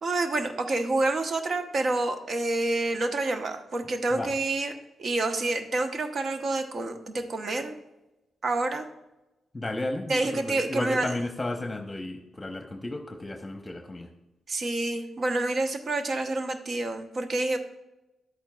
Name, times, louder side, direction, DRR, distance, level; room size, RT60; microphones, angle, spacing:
voice 1, 0.0-4.7 5.0-7.7 8.4-8.9 10.1-11.2 14.5-17.6, right 2 dB, 55° right, 7 dB, 0.9 m, -28 dB
voice 2, 9.5-14.1, left 2 dB, 25° left, 5 dB, 0.9 m, -33 dB
10.5 x 8.6 x 2.3 m, 1.0 s
supercardioid pair, 45°, 0 cm